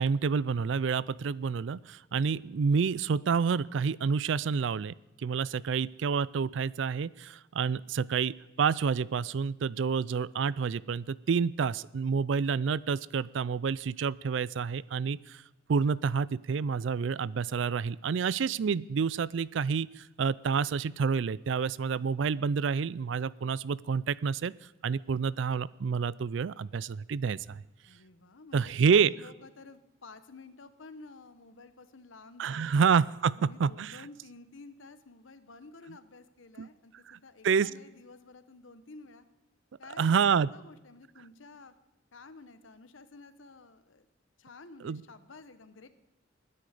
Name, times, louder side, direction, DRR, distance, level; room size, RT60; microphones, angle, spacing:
voice 1, 0.0-4.9 5.2-15.4 15.7-24.5 24.8-27.6 28.5-29.1 32.4-34.1 36.6-36.7 37.1-37.2 37.4-37.7 40.0-40.5 44.8-45.0, right 6 dB, 65° right, 21 dB, 0.4 m, -28 dB
voice 2, 27.8-32.9 33.4-39.3 39.8-41.7 42.1-44.1 44.4-45.9, left 3 dB, 75° left, 12 dB, 1.0 m, -52 dB
20.5 x 10.0 x 5.0 m, 0.98 s
head